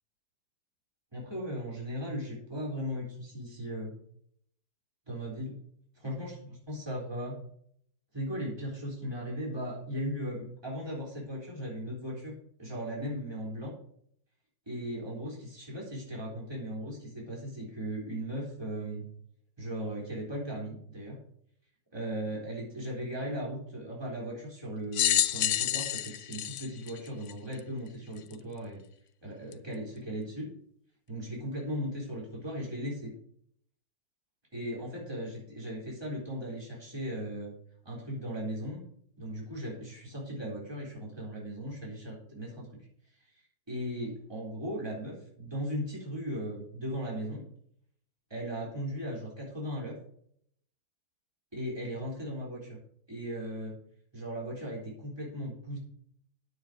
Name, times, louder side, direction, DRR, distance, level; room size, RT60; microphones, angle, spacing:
voice 1, 1.1-4.0 5.1-5.6 6.0-7.4 8.1-13.7 14.7-19.0 19.6-21.1 21.9-28.8 29.2-30.5 31.1-33.1 34.5-37.6 37.8-38.8 39.2-42.7 43.7-47.4 48.3-49.9 51.5-52.8 53.1-53.8 54.1-55.8, equal, 15° right, -4 dB, 4.0 m, -37 dB
sound 1, 24.9-27.6 28.3-28.4 29.5-29.6, left 12 dB, 70° left, 0.7 m, -28 dB
9.9 x 7.8 x 5.2 m, 0.65 s
omnidirectional pair, 1.8 m